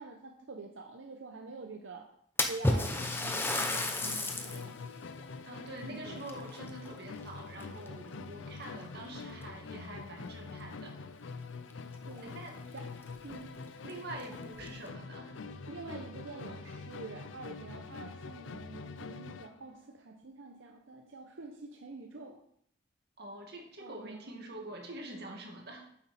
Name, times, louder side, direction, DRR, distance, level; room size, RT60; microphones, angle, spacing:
voice 1, 0.0-2.1 2.5-5.0 5.8-6.3 8.2-8.5 12.1-12.4 12.7-13.7 15.7-22.5 23.8-24.3, right 3 dB, 80° right, 3 dB, 0.8 m, -47 dB
Splash splatter, 2.4-4.7 5.2-5.3 6.2-7.2 7.6-8.0 8.8-8.9 9.4-9.5 11.7-11.8 12.1-12.2 12.8-12.9 13.3-13.4 14.1-14.7, left 2 dB, 10° left, 0.7 m, -32 dB
Musical instrument, 2.9-19.6, left 4 dB, 80° left, 0.5 m, -45 dB
voice 2, 5.4-11.1 12.2-12.6 13.8-15.4 23.2-25.9, right 1 dB, 60° right, 1 dB, 2.0 m, -45 dB
9.1 x 7.5 x 4.2 m, 0.69 s
head